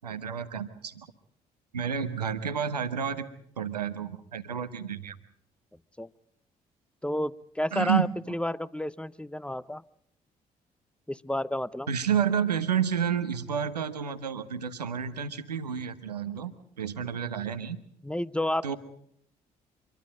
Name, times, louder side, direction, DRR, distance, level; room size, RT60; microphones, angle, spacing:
voice 1, 0.0-1.1 1.7-3.3 3.6-5.2 7.7-8.1 11.9-16.5 16.8-17.8 18.6-18.8, right 8 dB, 85° right, 10 dB, 1.0 m, -30 dB
voice 2, 7.0-9.8 11.1-11.9 18.0-18.8, left 1 dB, 5° left, 19 dB, 0.8 m, -31 dB
26.0 x 22.5 x 5.1 m, 0.70 s
figure-of-eight pair, 45°, 20 cm